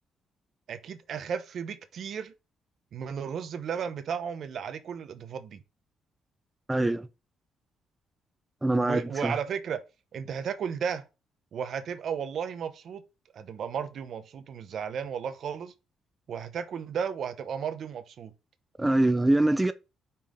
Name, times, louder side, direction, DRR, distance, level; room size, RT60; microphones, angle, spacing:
voice 1, 0.7-2.3 2.9-5.6 8.8-9.8 10.1-11.0 11.5-13.0 13.3-15.7 16.3-18.3, right 7 dB, 65° right, 1.0 m, -34 dB
voice 2, 6.7-7.1 8.6-9.4 18.8-19.7, right 2 dB, 10° right, 0.6 m, -24 dB
5.6 x 4.4 x 5.1 m
cardioid pair, 90°, 0 cm